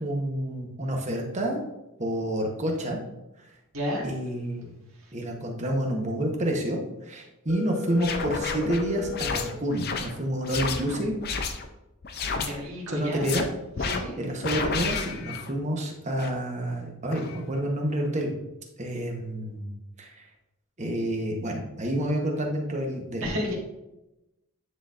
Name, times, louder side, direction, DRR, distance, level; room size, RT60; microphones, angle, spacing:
voice 1, 0.0-1.6 2.0-3.0 4.0-4.7 5.1-11.1 12.9-13.4 14.2-18.3 18.8-19.7 20.0-20.2 20.8-23.4, right 1 dB, 35° right, 1 dB, 1.0 m, -29 dB
voice 2, 3.7-4.1 12.4-13.3 13.9-14.1 23.2-23.5, equal, 80° right, -4 dB, 1.7 m, -31 dB
Telephone, 7.5-9.5, left 7 dB, 70° left, 1.1 m, -35 dB
sound 1, 7.9-11.7 12.0-12.5 13.0-13.4 13.8-14.0 14.4-15.6 16.1-16.3 17.1-17.3, left 4 dB, 50° left, 0.5 m, -31 dB
9.5 x 3.9 x 2.5 m, 0.95 s
head